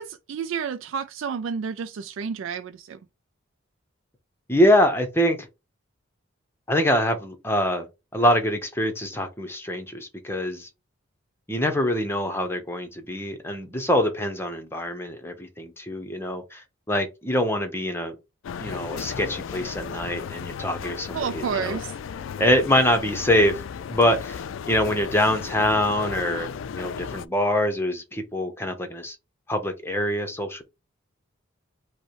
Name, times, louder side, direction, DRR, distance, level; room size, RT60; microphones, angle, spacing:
voice 1, 0.0-3.0 21.1-21.9, right 6 dB, 75° right, 0.3 m, -30 dB
voice 2, 4.5-5.4 6.7-7.9 8.1-10.7 11.5-18.1 18.6-21.8 22.4-23.6 23.9-24.4 24.7-26.5 26.7-29.2 29.5-30.6, left 1 dB, 10° left, 0.8 m, -24 dB
sound 1, 18.4-27.3, left 7 dB, 75° left, 0.3 m, -35 dB
5.4 x 2.2 x 4.6 m
head